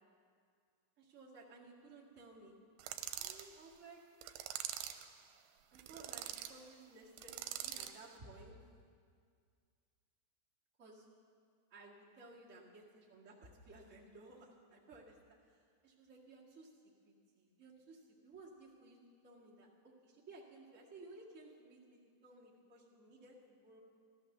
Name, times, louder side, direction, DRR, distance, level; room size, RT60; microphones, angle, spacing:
voice 1, 1.0-2.6 3.2-4.0 5.7-8.6 10.8-11.1 11.7-15.2 15.8-16.7 17.0-19.0 19.2-23.8, right 2 dB, 55° right, -6 dB, 0.8 m, -57 dB
sound 1, 2.8-3.5 4.2-5.1 5.8-6.5 7.2-8.0, right 11 dB, 85° right, 2.8 m, -44 dB
14.0 x 14.0 x 6.7 m, 2.1 s
omnidirectional pair, 5.2 m